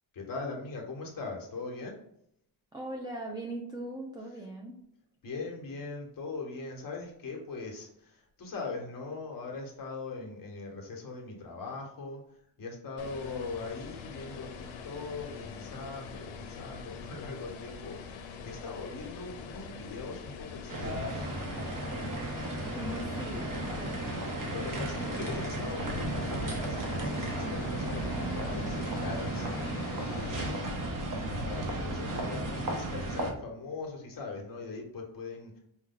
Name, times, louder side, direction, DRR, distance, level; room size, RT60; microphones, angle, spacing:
voice 1, 0.1-2.0 5.2-12.2 12.6-21.3 24.5-29.5 30.0-35.6, left 3 dB, 45° left, 0 dB, 1.1 m, -41 dB
voice 2, 2.7-4.8 22.7-24.0, right 1 dB, 10° right, -1 dB, 0.4 m, -40 dB
sound 1, 13.0-30.5, left 6 dB, 85° left, 0.7 m, -44 dB
sound 2, 20.7-33.3, right 1 dB, 45° right, 0.9 m, -34 dB
4.8 x 2.2 x 3.7 m, 0.72 s
wide cardioid pair, 160°, 47 cm